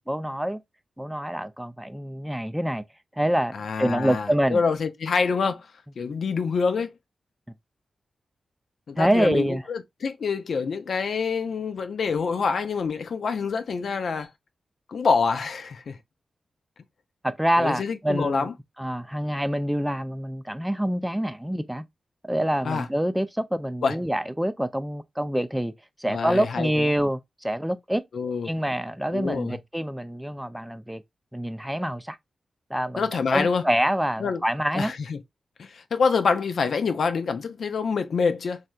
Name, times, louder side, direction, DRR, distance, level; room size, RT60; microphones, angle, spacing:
voice 1, 0.1-0.6 1.0-2.8 3.2-4.6 9.0-9.6 17.2-18.5 18.8-21.8 22.2-25.7 26.0-28.0 28.4-31.0 31.3-32.2 32.7-34.9, equal, 5° right, 0.4 m, -26 dB
voice 2, 3.5-5.7 6.0-6.9 8.9-14.3 14.9-16.0 17.6-18.5 22.6-22.9 23.8-23.9 26.0-26.8 28.1-28.5 29.1-29.5 33.0-33.6 34.2-34.4 34.7-35.2 35.6-38.6, left 5 dB, 75° left, 0.4 m, -26 dB
3.2 x 2.7 x 2.3 m
cardioid pair, 65°, 0 cm